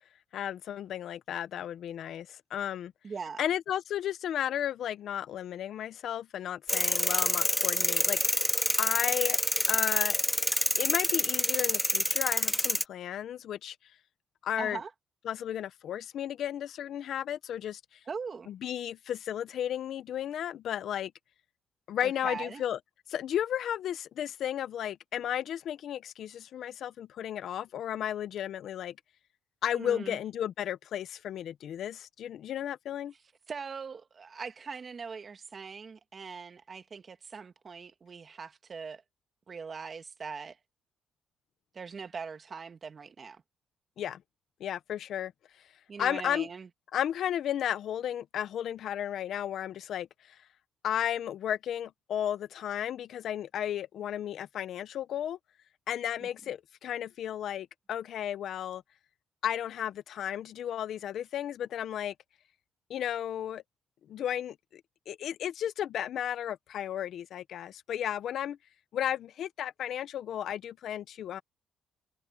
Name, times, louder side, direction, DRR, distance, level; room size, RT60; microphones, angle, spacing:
voice 1, 0.3-2.9 3.4-8.5 8.8-9.4 9.7-10.2 10.8-13.8 14.4-14.8 15.2-17.8 18.5-21.1 21.9-22.8 23.1-29.0 29.6-33.1 44.0-44.2 44.6-45.3 46.0-46.5 46.9-50.4 50.8-55.4 55.9-58.8 59.4-62.1 62.9-63.6 64.1-64.8 65.1-68.6 68.9-71.4, left 10 dB, 70° left, 0.9 m, -34 dB
voice 2, 3.0-3.4 14.6-14.9 18.1-18.5 22.0-22.6 29.7-30.2 33.5-39.0 39.5-40.6 41.7-43.4 45.9-46.7 56.2-56.3, right 5 dB, 40° right, 1.9 m, -41 dB
sound 1, 6.7-12.8, equal, 5° left, 0.8 m, -27 dB
cardioid pair, 90°, 0 cm